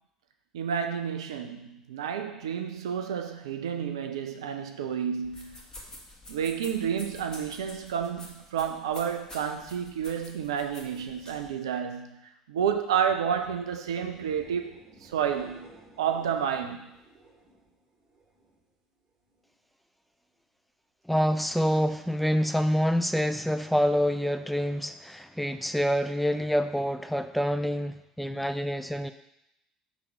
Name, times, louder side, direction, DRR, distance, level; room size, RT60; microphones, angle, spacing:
voice 1, 0.5-5.6 6.3-16.9, right 8 dB, 70° right, 6 dB, 0.5 m, -30 dB
sound 1, 5.2-11.5, left 1 dB, 25° left, 1.7 m, -48 dB
sound 2, 12.9-18.6 19.0-19.6 26.6-26.7, right 3 dB, 35° right, 2.1 m, -54 dB
voice 2, 21.1-29.1, equal, ahead, 8 dB, 0.4 m, -27 dB
4.8 x 3.5 x 5.5 m, 0.83 s
figure-of-eight pair, 60°, 3 cm